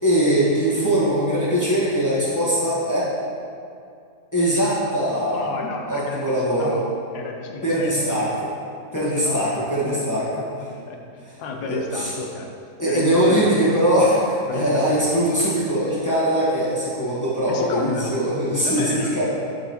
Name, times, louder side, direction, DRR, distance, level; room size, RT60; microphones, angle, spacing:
voice 1, 0.0-3.1 4.3-5.4 5.9-6.8 7.6-8.3 8.9-10.5 11.6-12.1 12.8-19.2, equal, 15° left, -9 dB, 1.0 m, -21 dB
voice 2, 5.3-6.9 7.1-8.3 8.9-9.4 9.9-10.0 10.4-12.5 12.8-13.8 14.5-15.1 17.5-18.2 18.6-19.2, left 3 dB, 75° left, 2 dB, 1.2 m, -31 dB
10.5 x 3.9 x 2.9 m, 2.4 s
omnidirectional pair, 1.8 m